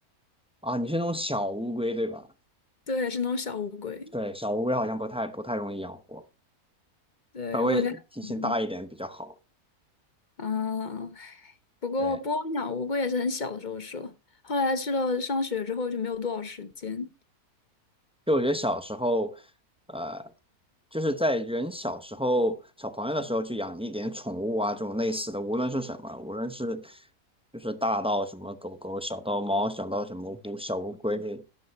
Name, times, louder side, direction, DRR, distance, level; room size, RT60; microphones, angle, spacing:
voice 1, 0.6-2.3 4.1-6.2 7.5-7.9 8.2-9.3 12.0-12.2 18.3-19.4 19.9-20.3 20.9-27.0 27.5-31.4, equal, 5° right, 0.4 m, -29 dB
voice 2, 2.9-4.1 7.3-8.0 8.2-8.5 10.4-11.5 11.8-14.1 14.4-17.1, left 3 dB, 35° left, 1.0 m, -30 dB
12.0 x 11.5 x 3.1 m
omnidirectional pair, 1.6 m